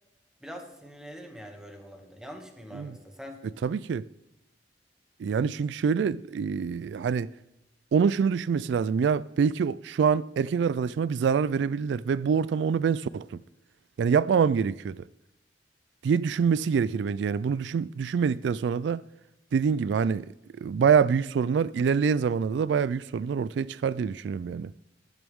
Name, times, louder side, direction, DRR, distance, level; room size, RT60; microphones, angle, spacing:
voice 1, 0.4-3.4, equal, 5° right, 1.9 m, -44 dB
voice 2, 3.6-4.1 5.2-7.3 7.9-13.4 14.0-15.0 16.0-19.0 19.5-20.3 20.6-24.7, right 6 dB, 75° right, 0.3 m, -25 dB
15.0 x 12.5 x 3.6 m
head